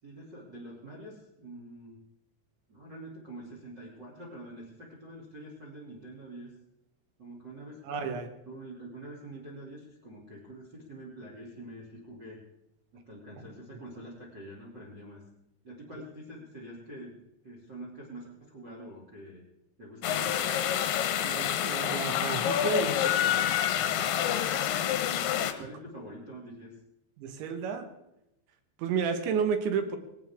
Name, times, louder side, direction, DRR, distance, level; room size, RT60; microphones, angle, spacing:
voice 1, 0.0-2.0 2.7-6.5 7.2-12.4 12.9-15.2 15.6-17.2 17.4-19.4 19.8-20.5 25.4-26.7, right 1 dB, 30° right, -3 dB, 2.5 m, -46 dB
voice 2, 7.8-8.3 21.2-23.5 23.8-24.1 27.2-27.9 28.8-30.0, right 6 dB, 70° right, 8 dB, 3.6 m, -32 dB
sound 1, 20.0-25.5, left 10 dB, 70° left, 2.7 m, -28 dB
19.5 x 18.5 x 3.7 m, 0.88 s
omnidirectional pair, 5.6 m